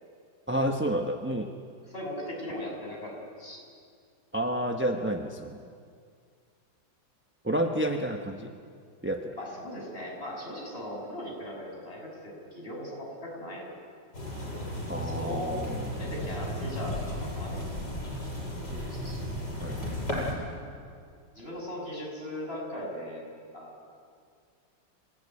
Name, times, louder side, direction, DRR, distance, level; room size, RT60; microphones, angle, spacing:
voice 1, 0.5-1.5 4.3-5.6 7.4-8.5 9.0-9.3 14.9-15.9 18.7-18.8 19.6-19.9, right 1 dB, 10° right, 3 dB, 0.7 m, -30 dB
voice 2, 1.9-3.6 9.3-13.7 15.0-15.6 15.9-17.8 18.5-19.2 21.3-23.3 23.5-23.7, left 1 dB, 30° left, -2 dB, 6.7 m, -39 dB
sound 1, 14.1-20.3, left 1 dB, 65° left, 7.6 m, -34 dB
26.5 x 16.5 x 9.8 m, 2.2 s
omnidirectional pair, 2.0 m